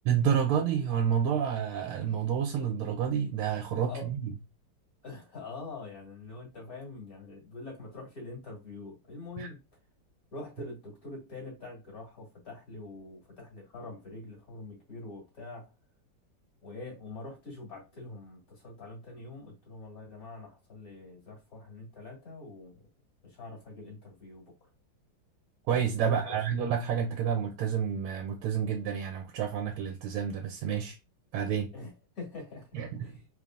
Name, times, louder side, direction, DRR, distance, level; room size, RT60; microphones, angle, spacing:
voice 1, 0.1-4.1 9.4-9.5 25.7-31.0 31.3-31.7 32.7-33.1, right 8 dB, 85° right, 1.5 m, -29 dB
voice 2, 5.0-9.6 10.3-15.7 16.6-22.9 23.2-24.5 26.0-26.4 31.7-33.3, left 3 dB, 45° left, 2.3 m, -44 dB
4.1 x 3.3 x 2.4 m
omnidirectional pair, 2.3 m